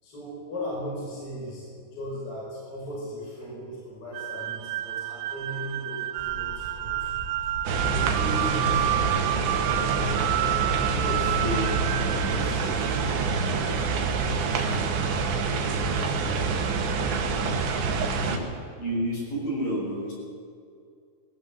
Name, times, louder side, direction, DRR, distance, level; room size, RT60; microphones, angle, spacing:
voice 1, 0.0-7.1 7.9-10.3 10.8-11.4 12.1-15.3, equal, 25° left, -5 dB, 6.2 m, -38 dB
sound 1, 4.1-13.3, right 14 dB, 80° right, 2.9 m, -30 dB
sound 2, 6.2-11.6, equal, 20° right, 3.9 m, -42 dB
sound 3, 7.7-18.4, right 4 dB, 65° right, 4.0 m, -26 dB
voice 2, 11.4-11.8 18.3-18.5 18.8-20.1, right 1 dB, 45° left, -4 dB, 8.8 m, -29 dB
20.5 x 18.5 x 8.1 m, 2.3 s
omnidirectional pair, 5.9 m